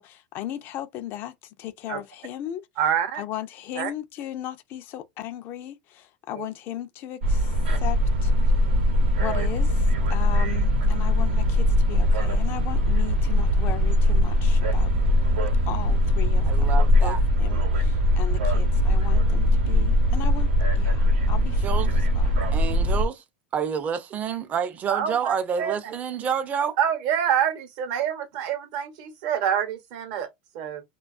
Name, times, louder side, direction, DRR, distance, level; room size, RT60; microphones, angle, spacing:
voice 1, 0.0-2.6 3.1-8.3 9.2-14.9 15.7-22.4, left 12 dB, 45° left, 0.4 m, -37 dB
voice 2, 2.8-3.2 3.7-3.9 6.3-6.4 24.9-25.9 26.8-30.3 30.5-30.8, right 9 dB, 60° right, 0.8 m, -26 dB
sound 1, 7.2-23.1, left 1 dB, 85° right, 0.8 m, -21 dB
voice 3, 16.4-17.2 21.6-21.9 22.5-23.2 23.5-26.8, right 7 dB, 30° right, 0.5 m, -28 dB
2.3 x 2.3 x 2.4 m
hypercardioid pair, 110°, 5 cm